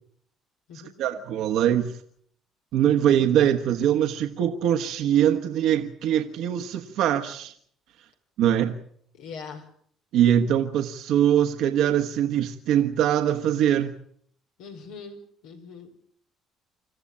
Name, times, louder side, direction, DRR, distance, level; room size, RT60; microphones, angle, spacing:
voice 1, 1.0-2.0 2.7-7.5 8.4-8.8 10.1-13.9, right 10 dB, 75° right, 1.4 m, -22 dB
voice 2, 9.1-9.7 14.6-15.9, left 5 dB, 85° left, 5.2 m, -41 dB
26.5 x 14.0 x 8.6 m
supercardioid pair, 85°, 0 cm